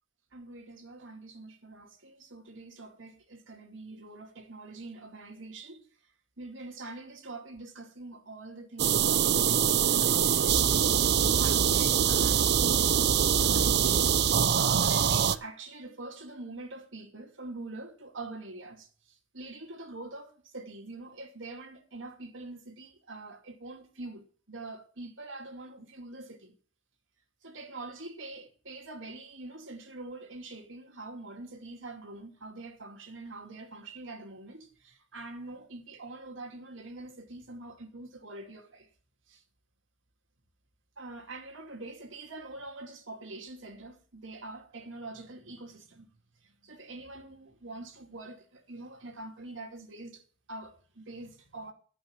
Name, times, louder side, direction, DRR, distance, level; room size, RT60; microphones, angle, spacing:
voice 1, 0.3-5.9 6.4-14.1 14.5-26.5 27.4-38.9 39.3-39.4 41.0-46.1 46.4-51.7, right 2 dB, 85° right, 2.4 m, -44 dB
sound 1, 8.8-15.3, right 8 dB, 60° right, 0.6 m, -24 dB
11.5 x 6.0 x 8.7 m
head